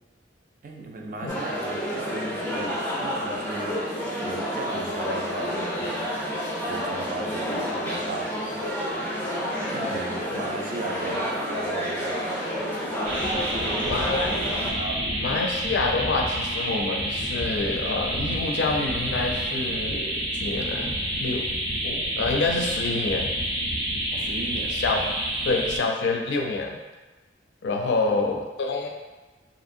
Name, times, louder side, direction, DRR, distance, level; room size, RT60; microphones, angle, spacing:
voice 1, 0.6-3.8 4.2-6.1 6.6-8.5 9.7-12.4 13.3-14.1 14.7-15.4 24.1-24.8 27.8-28.4, right 2 dB, 50° right, 0 dB, 0.4 m, -36 dB
sound 1, 1.3-14.7, equal, 10° left, 0.5 m, -29 dB
sound 2, 13.0-25.8, right 1 dB, 85° right, 0.8 m, -28 dB
voice 2, 13.9-14.4 15.2-20.9 21.2-21.4 21.8-23.3 24.7-25.0 25.5-26.8 27.6-28.9, left 3 dB, 70° left, 1 dB, 0.4 m, -27 dB
2.9 x 2.6 x 2.5 m, 1.2 s
head